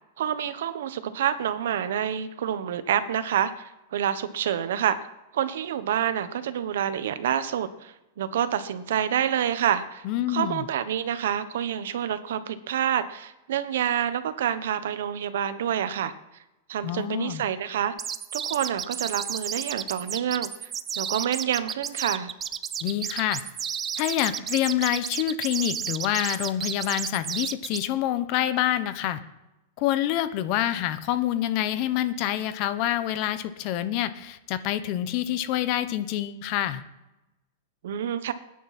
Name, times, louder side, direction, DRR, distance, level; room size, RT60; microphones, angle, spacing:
voice 1, 0.2-5.0 5.3-16.1 16.7-17.9 18.3-20.7 21.0-22.3 37.8-38.3, right 9 dB, 70° right, 12 dB, 1.2 m, -28 dB
voice 2, 10.0-10.6 16.8-17.4 22.8-23.4 24.0-29.2 29.8-36.8, left 12 dB, 35° left, 12 dB, 0.9 m, -27 dB
sound 1, 18.0-27.8, right 8 dB, 15° right, 0.5 m, -32 dB
20.0 x 10.0 x 4.3 m, 0.97 s
supercardioid pair, 170°, 0 cm